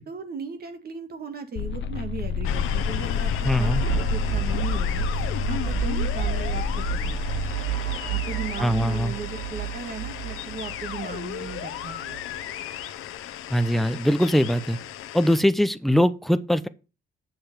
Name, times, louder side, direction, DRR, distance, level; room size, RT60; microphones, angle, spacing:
voice 1, 0.1-5.0 5.4-12.4, right 5 dB, 45° right, 1.8 m, -37 dB
sound 1, 1.6-7.5, left 6 dB, 60° left, 0.8 m, -29 dB
sound 2, 2.4-15.4, left 9 dB, 85° left, 1.1 m, -33 dB
voice 2, 3.4-3.8 8.6-9.1 13.5-14.8 15.1-16.7, equal, ahead, 0.7 m, -21 dB
sound 3, 3.6-12.2, right 15 dB, 90° right, 0.7 m, -32 dB
7.9 x 7.0 x 5.1 m
cardioid pair, 110°, 21 cm